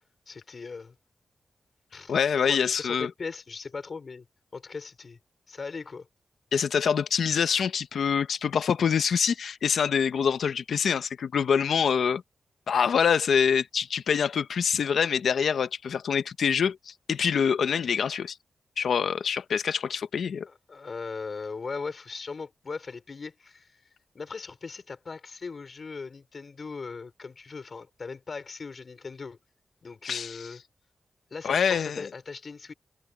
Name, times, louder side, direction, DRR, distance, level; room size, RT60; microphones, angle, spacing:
voice 1, 0.3-0.9 1.9-2.2 2.4-4.2 4.5-5.2 5.5-6.1 20.5-23.7 24.1-29.4 29.8-30.6 31.3-32.7, left 4 dB, 55° left, 4.7 m, -39 dB
voice 2, 2.1-3.1 6.5-12.2 12.7-18.4 18.8-20.5 30.0-30.5 31.4-32.1, left 7 dB, 90° left, 0.9 m, -25 dB
cardioid pair, 70°, 0 cm